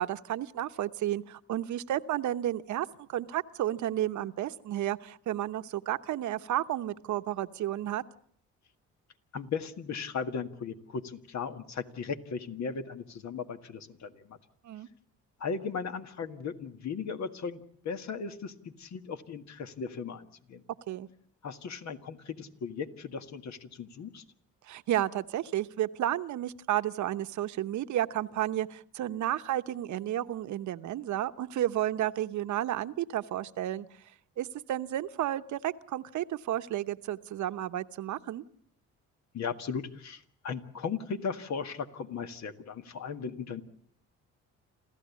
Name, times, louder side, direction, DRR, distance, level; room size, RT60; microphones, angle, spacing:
voice 1, 0.0-8.0 14.6-14.9 20.9-21.1 24.7-33.9 34.4-38.4, right 12 dB, 75° right, 11 dB, 1.0 m, -32 dB
voice 2, 9.3-14.4 15.4-20.6 21.4-24.2 39.3-43.6, left 5 dB, 65° left, 8 dB, 1.8 m, -37 dB
27.5 x 15.0 x 8.4 m, 0.62 s
cardioid pair, 90°, 30 cm